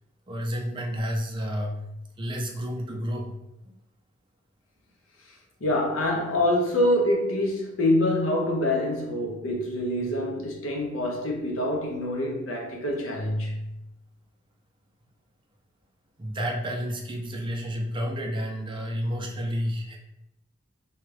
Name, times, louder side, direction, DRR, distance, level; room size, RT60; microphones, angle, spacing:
voice 1, 0.3-1.8 2.2-3.3 16.2-20.0, equal, 25° right, 0.5 m, -30 dB
voice 2, 5.6-13.7, left 1 dB, 75° left, 0.7 m, -26 dB
2.8 x 2.3 x 3.2 m
head